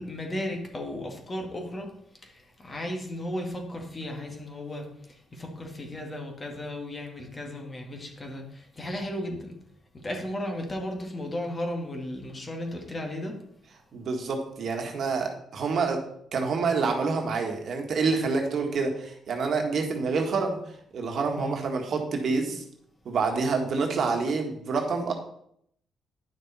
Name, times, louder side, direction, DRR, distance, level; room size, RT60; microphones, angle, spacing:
voice 1, 0.0-1.9 2.2-9.6 10.0-13.3 21.4-21.6, left 1 dB, 30° left, 2 dB, 2.1 m, -35 dB
voice 2, 13.9-16.0 16.3-20.6 20.9-22.6 23.0-25.1, right 4 dB, 60° right, 3 dB, 1.6 m, -27 dB
9.9 x 6.0 x 4.2 m, 0.70 s
cardioid pair, 90°, 0 cm